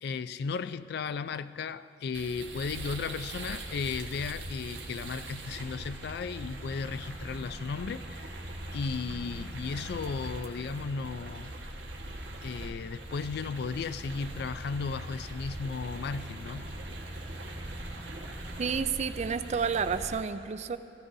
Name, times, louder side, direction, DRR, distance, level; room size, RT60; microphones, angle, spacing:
voice 1, 0.0-8.4 8.7-11.6 12.4-16.7, left 5 dB, 65° left, 0.3 m, -35 dB
sound 1, 2.1-20.2, right 1 dB, 85° right, 1.6 m, -41 dB
voice 2, 18.6-20.8, right 6 dB, 40° right, 0.4 m, -30 dB
17.5 x 15.0 x 2.7 m
head